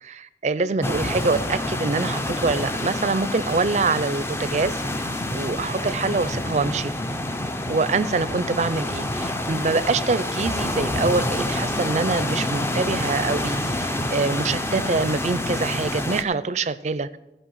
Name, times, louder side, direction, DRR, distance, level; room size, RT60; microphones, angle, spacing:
voice 1, 0.0-6.9 7.7-17.2, right 3 dB, 40° right, 14 dB, 0.4 m, -25 dB
sound 1, 0.8-16.2, left 1 dB, 15° left, 0.4 m, -27 dB
16.5 x 5.5 x 5.6 m, 0.98 s
head